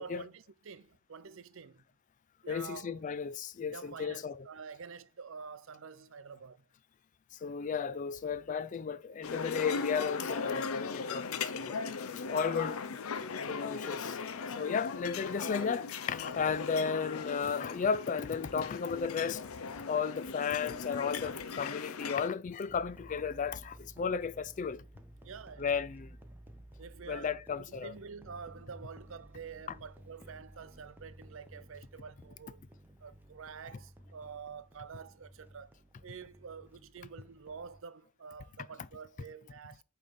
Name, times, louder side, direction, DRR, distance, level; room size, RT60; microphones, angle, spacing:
voice 1, 0.0-1.8 2.4-3.0 3.7-6.6 12.2-12.6 25.2-25.7 26.8-32.6 33.0-35.7 36.0-39.8, right 6 dB, 65° right, 0.6 m, -48 dB
voice 2, 2.5-4.5 7.3-11.8 12.2-12.8 13.5-14.2 14.6-19.5 19.9-24.8 25.6-26.2 27.1-27.9, left 6 dB, 35° left, 0.3 m, -34 dB
sound 1, 9.2-22.3, left 5 dB, 85° left, 0.5 m, -38 dB
sound 2, 22.7-37.8, right 1 dB, 10° right, 0.7 m, -55 dB
8.6 x 3.3 x 4.1 m
head